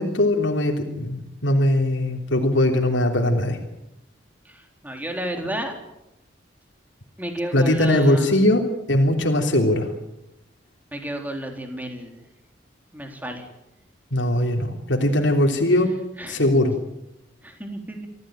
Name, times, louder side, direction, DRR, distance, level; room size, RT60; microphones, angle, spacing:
voice 1, 0.0-3.6 7.5-8.6 8.9-9.9 14.1-15.9 16.3-16.7, left 1 dB, 85° left, 2 dB, 3.3 m, -20 dB
voice 2, 4.5-5.7 7.2-8.3 10.9-12.2 12.9-13.5 16.2-16.5 17.4-18.1, right 1 dB, 10° right, 3 dB, 3.6 m, -32 dB
26.0 x 16.0 x 9.2 m, 0.89 s
head